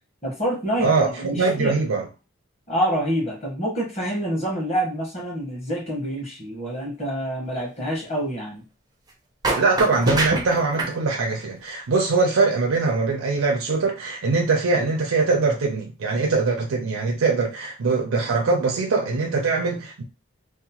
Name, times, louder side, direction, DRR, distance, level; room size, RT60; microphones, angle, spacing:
voice 1, 0.2-1.8 2.7-8.6, equal, 30° left, 1.1 m, -27 dB
voice 2, 0.8-2.0 9.5-20.0, right 4 dB, 80° right, 0.4 m, -22 dB
sound 1, 9.4-10.9, right 2 dB, 20° right, 0.4 m, -24 dB
2.7 x 2.0 x 2.9 m
head